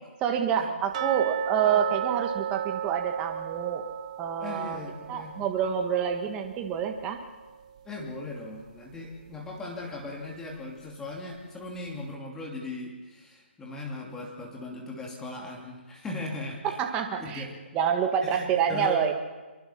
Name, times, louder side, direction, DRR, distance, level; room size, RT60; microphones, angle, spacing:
voice 1, 0.2-3.9 4.2-4.8 5.1-7.2 16.6-17.4 17.7-19.1, right 8 dB, 15° right, 4 dB, 1.5 m, -27 dB
sound 1, 0.9-7.8 8.1-8.2 8.7-8.8 9.3-9.4, right 9 dB, 35° right, 1.1 m, -34 dB
voice 2, 4.4-5.4 7.8-16.8 17.2-17.5 18.2-19.0, left 2 dB, 10° left, -1 dB, 2.8 m, -38 dB
24.0 x 23.0 x 5.9 m, 1.2 s
hypercardioid pair, 155°, 6 cm